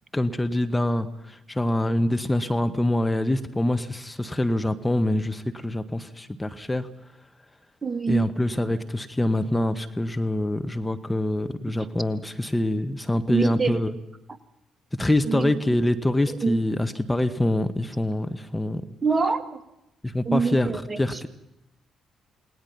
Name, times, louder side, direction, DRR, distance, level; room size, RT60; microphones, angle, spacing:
voice 1, 0.1-6.9 8.1-13.9 15.0-18.8 20.0-21.3, left 1 dB, 15° left, 8 dB, 1.5 m, -25 dB
voice 2, 7.8-8.3 11.6-11.9 13.3-13.8 15.2-15.5 16.4-16.6 19.0-19.6 20.3-21.3, right 5 dB, 30° right, 11 dB, 1.9 m, -25 dB
29.0 x 19.0 x 5.9 m, 0.89 s
hypercardioid pair, 45°, 0 cm